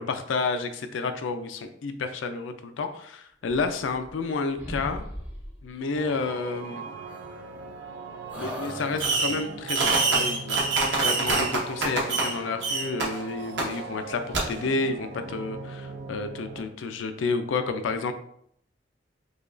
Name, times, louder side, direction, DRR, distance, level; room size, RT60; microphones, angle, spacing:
voice 1, 0.0-5.1 5.6-6.9 8.3-10.6 10.9-18.1, left 4 dB, 85° left, 8 dB, 0.4 m, -30 dB
sound 1, 3.4-4.3 4.6-5.7 7.1-7.9 8.3-9.5, equal, 10° right, 0.6 m, -40 dB
sound 2, 6.0-16.6, right 4 dB, 80° right, 0.4 m, -40 dB
Fireworks, 9.0-9.4 9.7-12.3 12.6-13.0 13.6-13.7 14.3-14.4, right 3 dB, 65° right, 0.9 m, -24 dB
4.9 x 2.3 x 2.5 m, 0.69 s
head